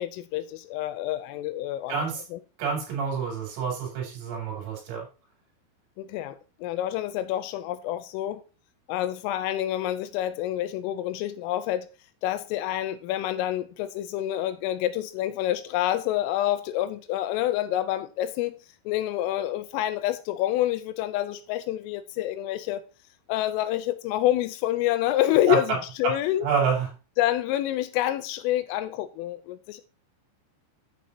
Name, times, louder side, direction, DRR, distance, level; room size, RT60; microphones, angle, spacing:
voice 1, 0.0-2.0 2.3-2.4 6.0-8.4 8.9-11.9 12.2-18.6 18.9-22.8 23.3-26.5 27.2-29.8, left 13 dB, 85° left, 3.2 m, -27 dB
voice 2, 1.9-2.2 2.6-5.0 25.5-25.6 26.0-26.1 26.4-26.9, right 6 dB, 90° right, 5.7 m, -27 dB
9.2 x 7.3 x 2.8 m
omnidirectional pair, 5.8 m